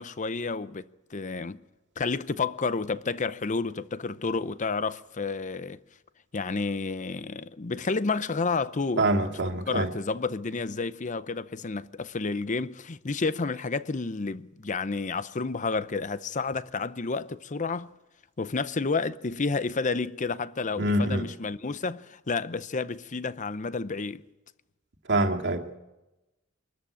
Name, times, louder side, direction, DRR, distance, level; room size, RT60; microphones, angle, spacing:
voice 1, 0.0-1.6 2.0-5.8 6.3-9.0 9.4-17.9 18.4-24.2, left 4 dB, 35° left, 0.7 m, -30 dB
voice 2, 9.0-9.9 20.8-21.3 25.1-25.8, right 1 dB, 60° right, 2.2 m, -25 dB
23.5 x 13.5 x 8.9 m
head